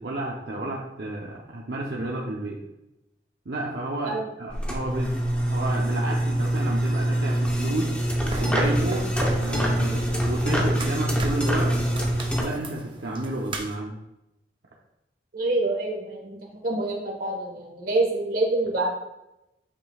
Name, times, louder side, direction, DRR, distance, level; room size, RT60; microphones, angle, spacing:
voice 1, 0.0-2.6 3.5-5.1 5.4-7.9 8.3-9.1 9.3-11.7 12.4-13.9, right 2 dB, 70° right, -3 dB, 0.8 m, -31 dB
sound 1, 4.5-12.4, right 1 dB, 5° left, 0.9 m, -25 dB
sound 2, 8.3-13.7, right 2 dB, 30° right, 0.6 m, -36 dB
voice 2, 15.3-18.9, right 2 dB, 50° right, 1 dB, 1.5 m, -26 dB
8.8 x 5.4 x 2.4 m, 0.90 s
head